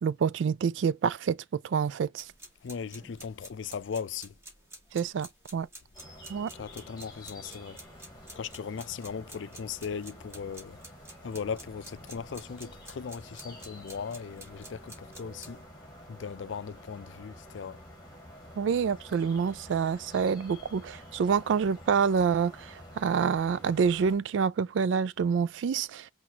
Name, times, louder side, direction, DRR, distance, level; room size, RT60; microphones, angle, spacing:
voice 1, 0.0-1.4 1.6-2.2 4.9-5.7 6.3-6.5 18.6-22.5 23.0-26.1, right 6 dB, 80° right, 0.3 m, -27 dB
sound 1, 2.2-15.6, right 1 dB, 15° right, 1.5 m, -51 dB
voice 2, 2.6-4.3 6.5-7.8 8.3-10.8 11.2-15.6 16.1-17.8, left 6 dB, 80° left, 0.4 m, -38 dB
sound 2, 5.9-24.2, equal, 20° left, 2.2 m, -49 dB
5.9 x 2.5 x 2.8 m
head